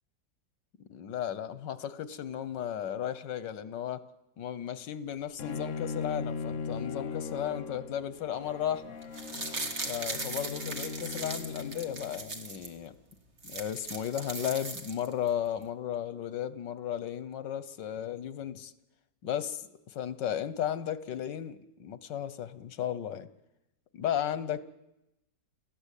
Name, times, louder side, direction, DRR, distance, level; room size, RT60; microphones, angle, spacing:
voice 1, 0.9-4.0 4.4-8.9 9.9-12.9 13.4-18.7 19.2-23.3 23.9-24.6, left 10 dB, 80° left, 15 dB, 1.7 m, -35 dB
Bowed string instrument, 5.4-12.5, left 5 dB, 50° left, 1.2 m, -39 dB
sound 1, 9.0-12.7 13.1-13.2 13.4-15.3 15.6-15.7, right 3 dB, 40° right, 2.1 m, -38 dB
29.0 x 14.5 x 8.4 m, 0.92 s
omnidirectional pair, 1.9 m